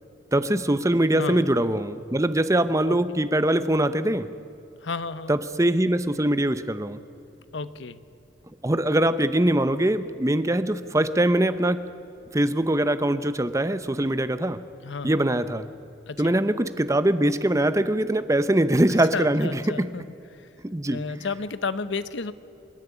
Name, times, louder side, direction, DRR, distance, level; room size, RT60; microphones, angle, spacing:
voice 1, 0.3-4.3 5.3-7.0 8.6-11.8 12.3-14.6 15.0-15.7 16.2-19.9 20.6-21.0, right 1 dB, 15° right, 13 dB, 0.7 m, -22 dB
voice 2, 1.2-1.5 2.9-3.0 4.8-5.4 7.5-8.0 14.8-15.3 16.1-16.4 19.1-20.0 20.3-20.4 20.9-22.3, left 4 dB, 70° left, 14 dB, 0.8 m, -32 dB
27.0 x 11.0 x 9.7 m, 2.8 s
head